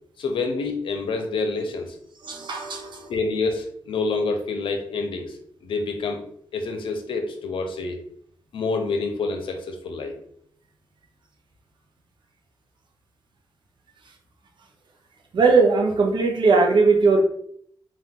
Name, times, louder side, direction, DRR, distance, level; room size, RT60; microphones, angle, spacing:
voice 1, 0.2-2.0 3.1-6.2 6.5-8.0 8.5-10.1, left 3 dB, 85° left, 4 dB, 0.7 m, -27 dB
voice 2, 2.2-3.1 15.3-17.2, right 4 dB, 65° right, 3 dB, 0.8 m, -19 dB
3.7 x 2.5 x 3.7 m, 0.64 s
cardioid pair, 100°, 9 cm